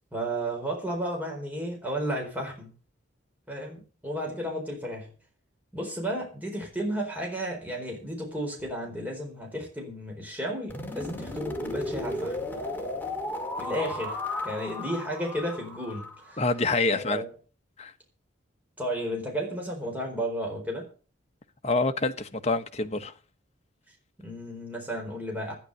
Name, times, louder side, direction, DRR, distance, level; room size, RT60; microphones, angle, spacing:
voice 1, 0.1-2.7 3.5-5.1 5.7-12.4 13.6-14.2 14.4-16.4 16.9-17.3 18.8-20.9 24.2-25.5, equal, 10° right, 4.2 m, -33 dB
sound 1, 10.7-16.6, left 1 dB, 10° left, 2.1 m, -35 dB
voice 2, 16.4-17.2 17.8-17.9 21.6-23.1, left 3 dB, 35° left, 1.0 m, -26 dB
12.5 x 9.8 x 6.5 m
head